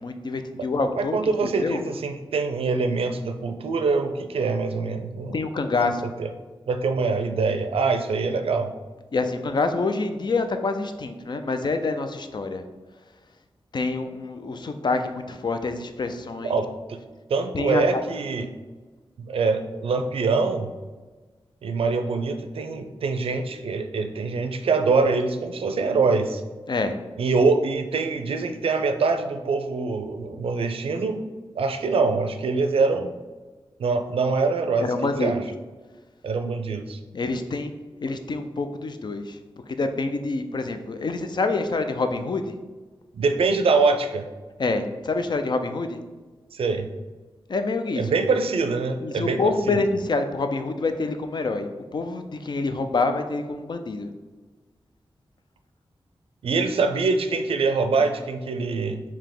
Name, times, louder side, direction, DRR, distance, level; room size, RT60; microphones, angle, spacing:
voice 1, 0.0-1.8 5.3-6.1 9.1-12.6 13.7-16.6 17.5-18.0 26.7-27.0 34.9-35.3 37.1-37.7 38.0-39.4 39.7-42.5 44.6-46.0 47.5-48.0 49.0-54.1, left 3 dB, 50° left, 7 dB, 0.4 m, -26 dB
voice 2, 1.0-5.4 6.2-6.3 6.7-8.7 16.4-17.0 17.3-18.5 19.2-20.7 21.6-26.4 27.2-31.3 31.6-33.1 33.8-34.9 35.2-35.4 36.2-37.0 43.1-44.3 46.5-46.9 48.0-49.8 56.4-59.0, right 4 dB, 80° right, 6 dB, 0.4 m, -24 dB
4.8 x 2.8 x 3.7 m, 1.3 s
cardioid pair, 70°, 10 cm